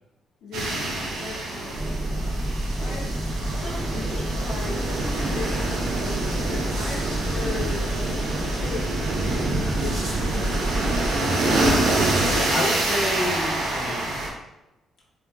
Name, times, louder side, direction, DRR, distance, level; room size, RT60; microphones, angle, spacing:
voice 1, 0.4-7.9 8.4-10.6 12.1-12.8, left 3 dB, 75° left, -5 dB, 0.9 m, -38 dB
sound 1, 0.5-14.3, right 2 dB, 85° right, 0.9 m, -26 dB
sound 2, 1.7-11.1, right 1 dB, 25° right, 0.9 m, -29 dB
sound 3, 6.6-10.5, right 2 dB, 65° right, 1.2 m, -44 dB
voice 2, 12.1-14.2, left 1 dB, 45° left, -4 dB, 1.3 m, -29 dB
3.5 x 3.1 x 3.6 m, 0.96 s
cardioid pair, 90°, 0 cm